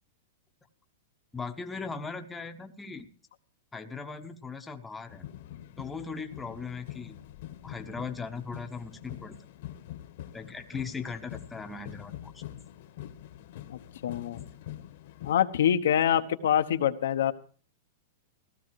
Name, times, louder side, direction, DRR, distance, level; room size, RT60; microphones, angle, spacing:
voice 1, 1.3-3.1 3.7-5.3 5.8-7.2 7.6-9.4 10.3-12.4, left 5 dB, 10° left, 5 dB, 0.9 m, -38 dB
sound 1, 5.1-15.4, left 12 dB, 55° left, 1.3 m, -45 dB
voice 2, 13.7-14.4 15.2-17.3, left 10 dB, 80° left, 8 dB, 1.1 m, -25 dB
16.0 x 13.5 x 4.7 m, 0.40 s
supercardioid pair, 160°, 0 cm